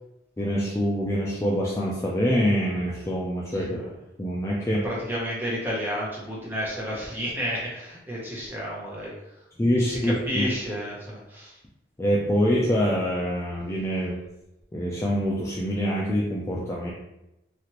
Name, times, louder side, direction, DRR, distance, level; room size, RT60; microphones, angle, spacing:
voice 1, 0.4-3.8 4.2-4.9 9.6-10.4 12.0-14.2 14.7-16.9, equal, 15° left, -4 dB, 0.3 m, -25 dB
voice 2, 4.8-9.1 9.8-11.6, equal, 10° right, -5 dB, 0.8 m, -31 dB
3.0 x 2.4 x 2.9 m, 0.90 s
head